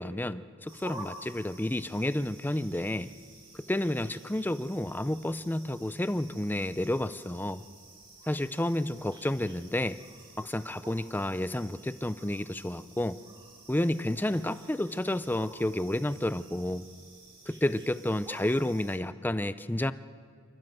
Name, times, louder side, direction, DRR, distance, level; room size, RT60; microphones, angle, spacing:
voice 1, 0.0-3.1 3.7-7.6 8.3-10.0 10.4-13.2 13.7-16.9 17.5-19.9, left 1 dB, 10° left, 13 dB, 0.4 m, -30 dB
sound 1, 0.7-19.0, right 2 dB, 20° right, 2.2 m, -51 dB
28.0 x 13.0 x 7.8 m, 2.3 s
head